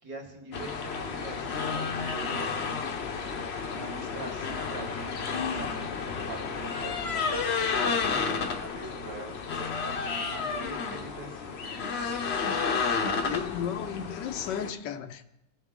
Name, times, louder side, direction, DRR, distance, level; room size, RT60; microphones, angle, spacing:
voice 1, 0.0-3.1 3.7-5.9 6.3-11.6, right 2 dB, 70° right, 2.8 m, -42 dB
sound 1, 0.5-14.7, left 5 dB, 50° left, 0.8 m, -31 dB
voice 2, 13.2-15.3, left 8 dB, 80° left, 1.3 m, -34 dB
18.0 x 6.9 x 3.7 m
omnidirectional pair, 2.0 m